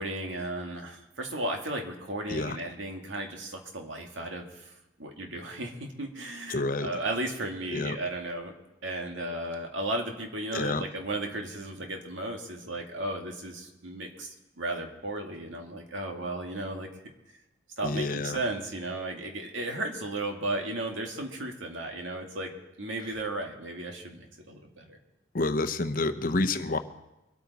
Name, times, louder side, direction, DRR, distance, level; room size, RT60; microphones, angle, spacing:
voice 1, 0.0-4.7 5.0-8.5 8.8-16.9 17.8-25.0, right 2 dB, 85° right, 2 dB, 2.0 m, -35 dB
voice 2, 6.5-6.9 7.7-8.0 10.5-10.8 17.8-18.4 25.3-26.8, left 2 dB, 50° left, 9 dB, 0.8 m, -28 dB
24.5 x 8.8 x 4.1 m, 0.98 s
head